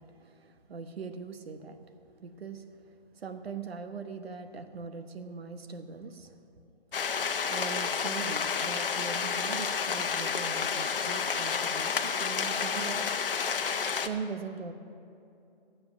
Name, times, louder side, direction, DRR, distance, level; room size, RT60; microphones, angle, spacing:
voice 1, 0.0-1.9 2.2-6.4 7.5-13.2 13.9-14.7, right 5 dB, 80° right, 8 dB, 0.9 m, -41 dB
sound 1, 6.9-14.1, left 6 dB, 65° left, 0.9 m, -30 dB
12.0 x 7.8 x 9.4 m, 2.7 s
hypercardioid pair, 165°, 30 cm